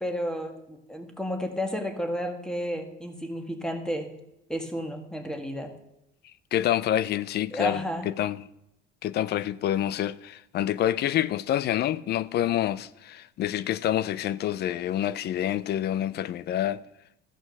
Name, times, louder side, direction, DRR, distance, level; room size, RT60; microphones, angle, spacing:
voice 1, 0.0-4.1 4.5-5.7 7.5-8.1, equal, 5° left, 1.7 m, -32 dB
voice 2, 6.5-8.4 9.0-16.8, left 12 dB, 50° left, 0.5 m, -27 dB
14.5 x 6.1 x 6.4 m
cardioid pair, 115°, 21 cm